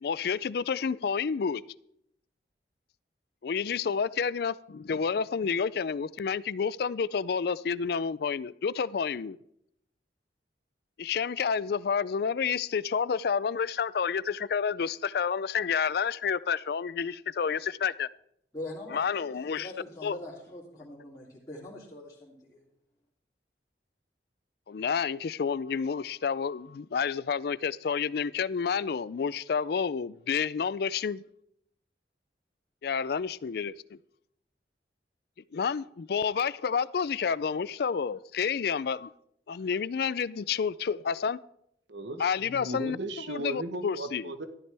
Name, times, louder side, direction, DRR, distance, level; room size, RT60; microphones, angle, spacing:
voice 1, 0.0-1.6 3.4-9.4 11.0-18.1 18.9-19.7 20.0-20.2 24.7-31.2 32.8-34.0 35.5-39.1 39.5-41.4 42.2-43.0 43.3-44.3, left 6 dB, 60° left, 0.4 m, -29 dB
voice 2, 18.5-22.6, left 1 dB, 20° left, 3.0 m, -43 dB
voice 3, 41.9-44.5, right 1 dB, 80° right, 1.1 m, -37 dB
13.5 x 12.5 x 3.4 m
head